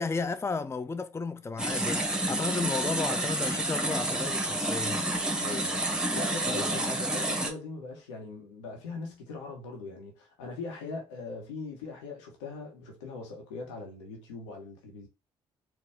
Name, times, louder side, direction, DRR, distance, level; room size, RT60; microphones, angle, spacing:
voice 1, 0.0-5.0 6.4-6.7, left 4 dB, 20° left, 0.5 m, -33 dB
sound 1, 1.6-7.5, right 1 dB, 5° right, 1.5 m, -29 dB
voice 2, 5.4-5.9 6.1-15.1, left 3 dB, 85° left, 1.2 m, -40 dB
4.2 x 2.4 x 3.5 m
hypercardioid pair, 45°, 15 cm